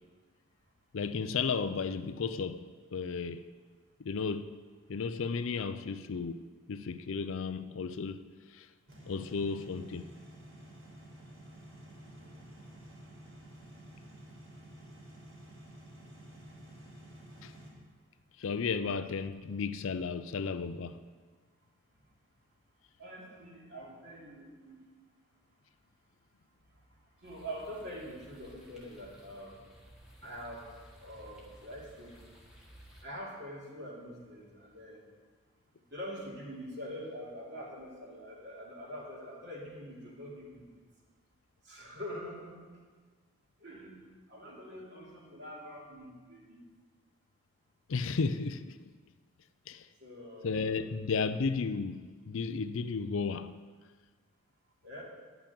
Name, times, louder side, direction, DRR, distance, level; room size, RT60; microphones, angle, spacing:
voice 1, 0.9-3.4 4.0-4.5 4.9-6.4 6.7-8.7 9.1-10.1 17.4-17.5 18.4-21.0 47.9-48.8 49.7-49.9 50.4-53.5, left 5 dB, 65° left, 0.4 m, -34 dB
sound 1, 8.9-17.7, right 1 dB, 65° right, 3.6 m, -51 dB
voice 2, 23.0-24.8 27.2-29.6 30.2-30.7 31.0-32.2 33.0-35.0 35.9-40.6 41.6-42.6 43.6-44.0 44.3-46.6 50.0-50.8 54.8-55.0, equal, 50° right, 2.8 m, -44 dB
sound 2, 27.2-33.0, equal, 5° right, 1.5 m, -56 dB
10.5 x 5.9 x 8.4 m
head